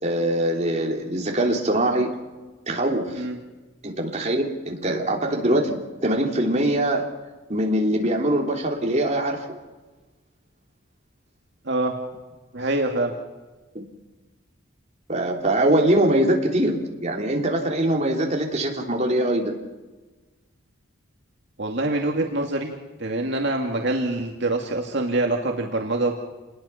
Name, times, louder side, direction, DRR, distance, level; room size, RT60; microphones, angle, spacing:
voice 1, 0.0-2.2 2.7-3.2 3.8-7.1 7.5-9.5 13.7-13.9 15.1-19.5, right 1 dB, 35° right, 1 dB, 3.3 m, -23 dB
voice 2, 12.5-13.1 21.6-22.7 23.0-26.2, right 2 dB, 60° right, 1 dB, 2.3 m, -25 dB
28.0 x 20.5 x 5.8 m, 1.2 s
head